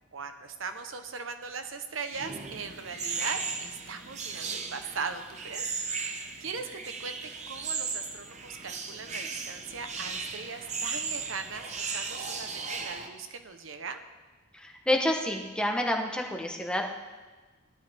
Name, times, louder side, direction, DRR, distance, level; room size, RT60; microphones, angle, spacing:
voice 1, 0.1-7.2 7.5-14.0, right 5 dB, 90° right, 8 dB, 1.0 m, -39 dB
sound 1, 2.1-13.1, right 4 dB, 35° right, 0.9 m, -36 dB
voice 2, 14.5-16.9, left 1 dB, 5° left, 1 dB, 1.1 m, -28 dB
17.5 x 11.5 x 3.6 m, 1.3 s
head